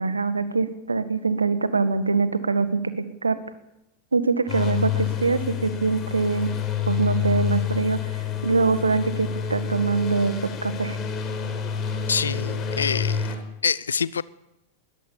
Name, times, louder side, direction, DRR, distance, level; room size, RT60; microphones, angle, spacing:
voice 1, 0.0-3.4 4.1-6.5 6.9-8.1 8.4-11.0, right 4 dB, 75° right, 12 dB, 1.8 m, -23 dB
sound 1, 4.5-13.4, left 8 dB, 30° left, 4.8 m, -28 dB
voice 2, 12.1-13.3 13.6-14.2, left 6 dB, 70° left, 20 dB, 0.7 m, -25 dB
21.0 x 20.0 x 7.1 m, 0.91 s
figure-of-eight pair, 90°, 0 cm